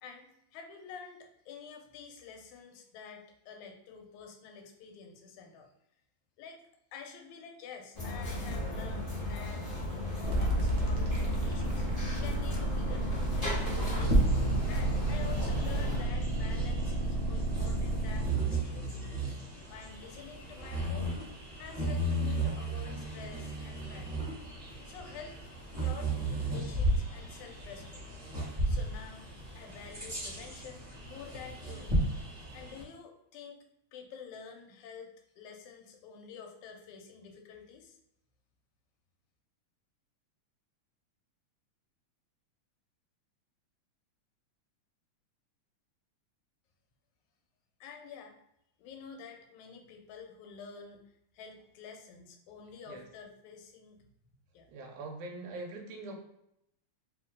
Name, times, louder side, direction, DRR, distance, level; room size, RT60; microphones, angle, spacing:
voice 1, 0.0-5.7 6.4-6.6 6.9-13.4 13.9-14.3 14.7-19.0 19.7-21.3 21.6-24.2 24.8-25.4 25.8-28.1 28.7-31.9 32.5-33.7 33.9-38.0 47.8-48.4 48.8-51.0 51.3-54.1 54.5-54.7, left 6 dB, 90° left, 3 dB, 2.1 m, -49 dB
sound 1, 7.9-16.0, left 1 dB, 30° left, 0.7 m, -36 dB
sound 2, 10.2-18.3, right 1 dB, 65° right, 1.3 m, -32 dB
Bird vocalization bird call bird song, 13.4-32.8, right 1 dB, 25° right, 1.0 m, -34 dB
voice 2, 54.7-56.2, right 2 dB, 85° right, 1 dB, 2.1 m, -42 dB
4.5 x 2.9 x 3.6 m, 0.79 s
omnidirectional pair, 3.4 m